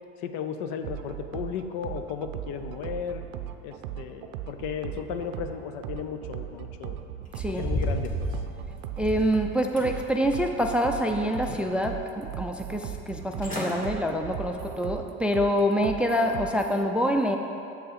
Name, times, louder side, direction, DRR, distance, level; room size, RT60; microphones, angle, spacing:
voice 1, 0.2-3.2 3.6-7.0 7.5-8.3, left 7 dB, 70° left, 8 dB, 0.7 m, -35 dB
sound 1, 0.8-16.8, right 11 dB, 75° right, 0.5 m, -38 dB
sound 2, 7.3-9.3 9.8-10.6 11.0-11.8 12.3-12.4 13.1-13.2 13.4-13.7 14.2-14.5 14.9-15.0, left 2 dB, 25° left, 1.9 m, -34 dB
voice 2, 7.3-7.7 9.0-17.4, equal, 5° right, 4 dB, 0.3 m, -26 dB
7.2 x 6.6 x 4.1 m, 2.7 s
supercardioid pair, 90°, 35 cm